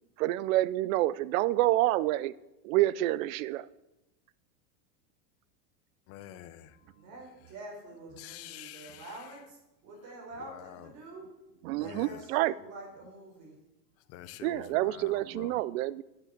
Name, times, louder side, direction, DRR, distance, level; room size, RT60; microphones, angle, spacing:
voice 1, 0.2-2.3 2.6-3.7 11.6-12.5 14.4-16.0, right 16 dB, 55° right, 19 dB, 0.6 m, -28 dB
voice 2, 6.1-7.1 8.1-9.4 10.4-10.9 11.8-12.3 14.0-15.6, left 12 dB, 30° left, 12 dB, 0.7 m, -47 dB
voice 3, 7.0-11.2 11.8-13.6, right 2 dB, 35° right, 0 dB, 4.5 m, -47 dB
9.5 x 7.6 x 7.5 m, 0.91 s
supercardioid pair, 145°, 49 cm